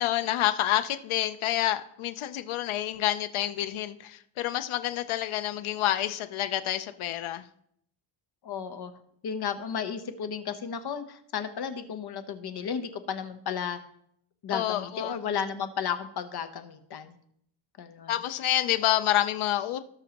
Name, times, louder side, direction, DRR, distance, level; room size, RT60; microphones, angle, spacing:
voice 1, 0.0-7.4 14.5-15.2 18.1-19.8, left 13 dB, 80° left, 0.7 m, -28 dB
voice 2, 8.4-8.9 9.2-13.8 14.4-17.2 17.8-18.1, left 7 dB, 50° left, 1.0 m, -33 dB
18.0 x 6.2 x 2.9 m
wide cardioid pair, 155°, 49 cm